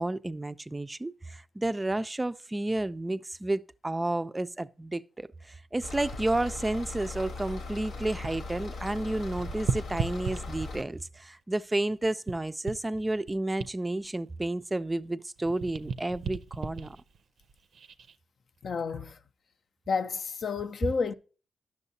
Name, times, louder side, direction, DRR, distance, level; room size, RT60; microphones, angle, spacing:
voice 1, 0.0-17.0, right 2 dB, 20° right, 0.3 m, -31 dB
sound 1, 5.8-10.8, left 3 dB, 85° left, 1.1 m, -39 dB
sound 2, 5.8-8.6 8.8-11.0 11.5-15.1 15.4-18.2 18.7-18.9, right 5 dB, 80° right, 0.5 m, -38 dB
voice 2, 18.6-19.2 19.9-21.1, left 5 dB, 65° left, 0.4 m, -30 dB
11.0 x 6.3 x 2.7 m
cardioid pair, 85°, 0 cm